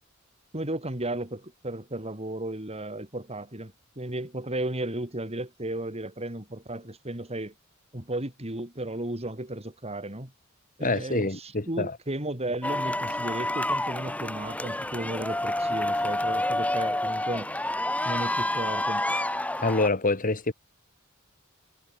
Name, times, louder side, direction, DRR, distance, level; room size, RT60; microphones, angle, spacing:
voice 1, 0.5-7.5 7.9-10.3 10.8-17.5 18.0-19.1, right 1 dB, 30° right, 4.4 m, -34 dB
voice 2, 10.8-12.0 19.6-20.5, left 2 dB, 40° left, 2.0 m, -26 dB
sound 1, 12.6-19.9, left 1 dB, 5° left, 4.5 m, -28 dB
head